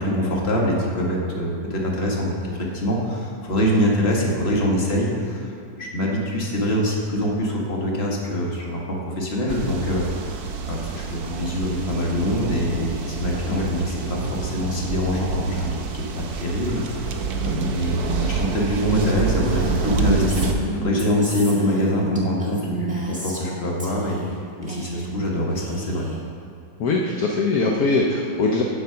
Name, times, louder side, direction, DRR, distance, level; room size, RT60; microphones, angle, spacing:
voice 1, 0.0-24.2 24.6-26.1, equal, 35° left, -2 dB, 1.7 m, -24 dB
sound 1, 9.5-20.5, right 4 dB, 60° right, 1.2 m, -28 dB
Female speech woman speaking, 18.9-23.5 23.8-24.4 24.6-25.3 25.5-26.2, equal, 5° right, 1.3 m, -32 dB
voice 2, 26.8-28.6, left 3 dB, 60° left, 0 dB, 1.1 m, -21 dB
8.0 x 7.8 x 5.6 m, 2.6 s
omnidirectional pair, 2.0 m